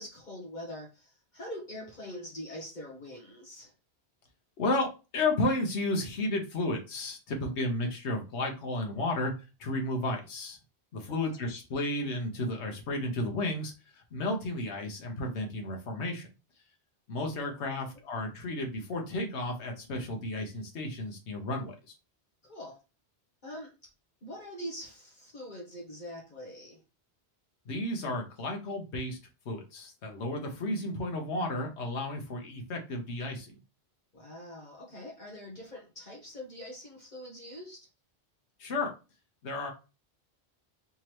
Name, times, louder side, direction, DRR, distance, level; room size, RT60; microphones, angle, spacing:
voice 1, 0.0-3.7 11.1-11.2 17.4-17.5 22.4-22.8 23.4-23.9 24.2-26.8 34.1-37.9, left 1 dB, 45° left, -1 dB, 1.0 m, -43 dB
voice 2, 4.6-9.3 9.6-10.6 10.9-16.3 17.1-22.0 27.6-29.2 29.4-33.6 38.6-38.9 39.4-39.7, left 2 dB, 85° left, 2 dB, 1.2 m, -33 dB
3.5 x 3.1 x 2.9 m, 0.30 s
omnidirectional pair, 1.1 m